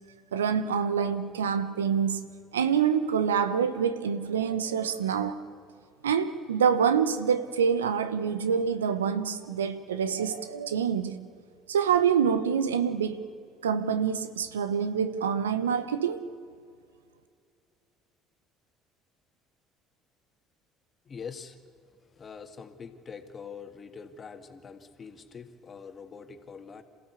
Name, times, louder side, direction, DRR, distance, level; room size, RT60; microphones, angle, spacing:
voice 1, 0.3-2.2 2.5-5.4 6.0-11.2 11.7-13.3 13.6-16.2, right 7 dB, 85° right, 0.9 m, -26 dB
voice 2, 21.1-21.6 22.2-26.8, left 6 dB, 35° left, 2.1 m, -44 dB
27.5 x 15.0 x 8.3 m
hypercardioid pair, 60°, 0 cm